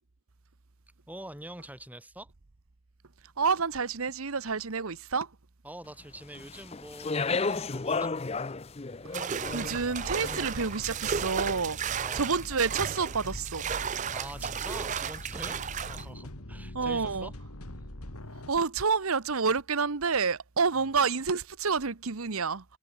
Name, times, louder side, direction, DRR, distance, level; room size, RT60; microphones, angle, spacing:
voice 1, 1.1-2.3 5.6-8.1 12.0-12.4 14.1-17.3 20.8-20.9, right 1 dB, 5° right, 2.8 m, -45 dB
voice 2, 3.4-5.3 9.1-11.8 12.1-13.7 16.7-17.3 18.5-22.6, right 5 dB, 75° right, 1.1 m, -29 dB
Speech, 6.3-10.7, left 4 dB, 25° left, 0.5 m, -33 dB
sound 1, 9.1-16.0, right 7 dB, 35° right, 0.4 m, -34 dB
sound 2, 9.4-18.5, left 1 dB, 85° left, 3.2 m, -43 dB
head